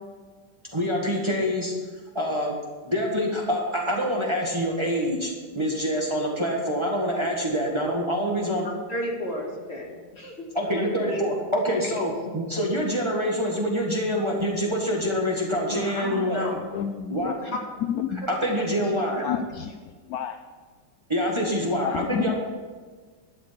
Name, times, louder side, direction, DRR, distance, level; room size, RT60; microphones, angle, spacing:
voice 1, 0.7-1.7 2.2-2.6 2.9-8.7 10.6-16.5 17.1-17.3 18.3-19.2 21.1-22.3, equal, 15° right, -2 dB, 1.6 m, -26 dB
voice 2, 8.6-10.8 11.1-11.2 11.8-11.9 12.2-12.4 15.7-16.5 17.4-17.6 19.0-19.1, left 1 dB, 35° left, -2 dB, 2.2 m, -33 dB
voice 3, 16.7-17.3 17.9-18.2 19.2-19.8 20.1-20.4 21.8-22.3, left 8 dB, 70° left, 8 dB, 0.9 m, -29 dB
12.0 x 6.7 x 7.0 m, 1.5 s
omnidirectional pair, 2.0 m